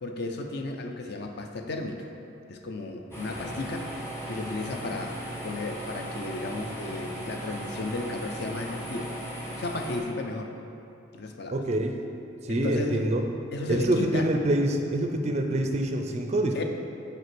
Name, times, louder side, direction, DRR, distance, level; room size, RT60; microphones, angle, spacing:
voice 1, 0.0-2.1 2.5-3.9 4.3-5.2 5.4-9.1 9.6-10.5 11.1-11.6 12.5-13.1 13.5-14.3 16.5-16.6, left 2 dB, 50° left, 4 dB, 0.5 m, -34 dB
sound 1, 3.1-10.0, right 1 dB, 10° left, 1.1 m, -37 dB
voice 2, 11.5-12.0 12.4-13.2 13.7-16.6, right 1 dB, 30° right, 4 dB, 0.4 m, -26 dB
5.5 x 4.1 x 6.0 m, 2.8 s
head